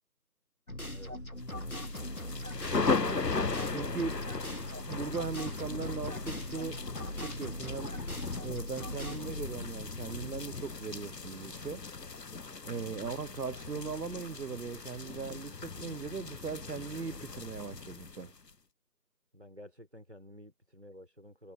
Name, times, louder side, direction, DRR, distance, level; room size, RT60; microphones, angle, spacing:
sound 1, 0.7-10.6, left 1 dB, 55° left, 2.1 m, -40 dB
voice 1, 0.9-1.3 13.0-13.2 19.3-21.5, left 1 dB, 40° right, 3.9 m, -51 dB
sound 2, 1.6-18.5, left 4 dB, 75° left, 1.0 m, -38 dB
voice 2, 2.7-3.2 3.7-4.2 4.9-6.8 7.2-7.9 8.4-11.9 12.6-18.3, right 5 dB, 70° right, 0.7 m, -39 dB
figure-of-eight pair, 180°, 49 cm